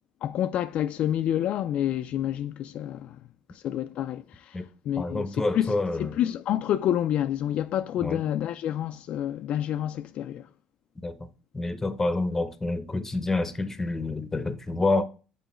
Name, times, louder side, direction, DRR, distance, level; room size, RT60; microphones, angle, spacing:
voice 1, 0.2-3.2 3.5-10.5, left 11 dB, 60° left, 0.3 m, -28 dB
voice 2, 5.0-6.2 8.0-8.2 11.0-11.1 11.5-15.0, left 2 dB, 15° left, 0.8 m, -28 dB
6.8 x 4.6 x 3.1 m
supercardioid pair, 95°, 2 cm